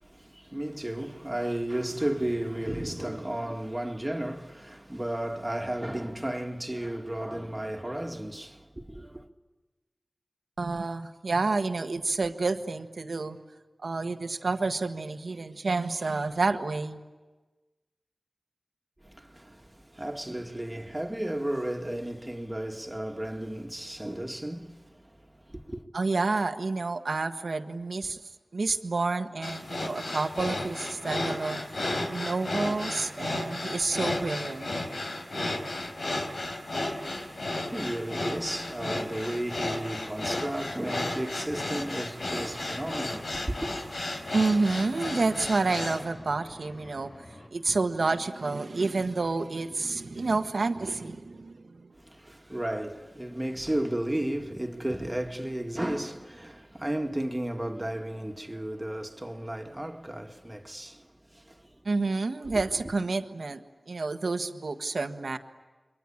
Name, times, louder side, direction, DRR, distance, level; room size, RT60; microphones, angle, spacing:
voice 1, 0.0-9.3 19.0-25.8 36.9-43.7 52.0-61.8 62.5-62.6, right 1 dB, 20° right, 2.1 m, -34 dB
voice 2, 10.6-13.4 13.8-17.0 25.9-28.2 28.5-31.6 32.1-34.7 44.3-47.1 47.5-51.9 61.8-65.4, right 3 dB, 80° right, 1.4 m, -29 dB
sound 1, 29.4-46.0, left 2 dB, 85° left, 3.9 m, -33 dB
sound 2, 42.2-47.5, left 1 dB, 65° left, 4.0 m, -49 dB
29.5 x 23.0 x 8.7 m
cardioid pair, 45°, 0 cm